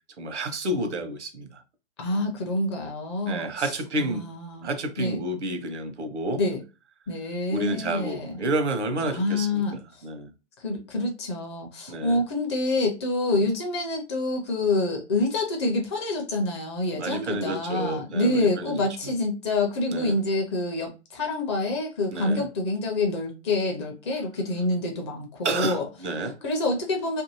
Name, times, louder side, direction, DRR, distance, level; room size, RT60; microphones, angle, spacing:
voice 1, 0.2-1.5 3.3-4.2 4.6-6.4 7.5-10.3 11.9-12.2 17.0-18.9 19.9-20.2 22.1-22.5 25.4-26.4, right 1 dB, 70° right, 0.8 m, -30 dB
voice 2, 2.0-4.7 5.0-5.2 6.4-6.6 7.1-8.4 9.0-9.8 10.6-25.9 26.4-27.2, left 2 dB, 25° left, 0.5 m, -27 dB
2.6 x 2.6 x 2.7 m
figure-of-eight pair, 125°, 36 cm